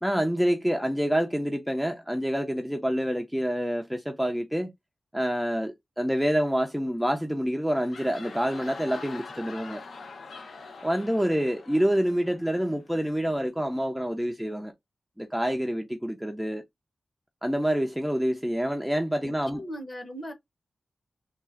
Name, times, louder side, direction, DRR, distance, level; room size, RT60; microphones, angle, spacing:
voice 1, 0.0-4.7 5.1-9.8 10.8-14.7 15.2-16.6 17.4-19.6, equal, ahead, 0.4 m, -27 dB
sound 1, 7.6-13.2, left 4 dB, 65° left, 0.8 m, -44 dB
voice 2, 19.2-20.3, equal, 30° left, 1.0 m, -39 dB
3.6 x 2.4 x 4.3 m
wide cardioid pair, 180°, 0 cm